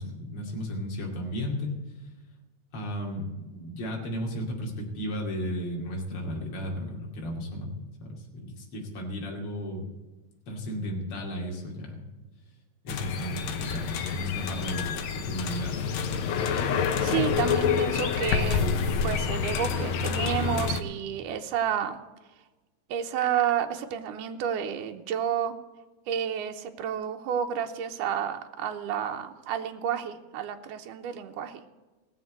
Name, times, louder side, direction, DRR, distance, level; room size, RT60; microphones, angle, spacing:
voice 1, 0.0-1.7 2.7-7.7 8.0-9.9 10.5-12.1 12.8-15.8 16.1-16.2, equal, 45° left, 0 dB, 3.3 m, -34 dB
sound 1, 12.9-20.8, left 6 dB, 70° left, 2.2 m, -28 dB
voice 2, 17.0-18.7 19.0-22.0 22.9-25.5 26.1-31.6, right 9 dB, 90° right, 5 dB, 2.5 m, -30 dB
18.0 x 7.4 x 7.9 m, 1.2 s
omnidirectional pair, 3.6 m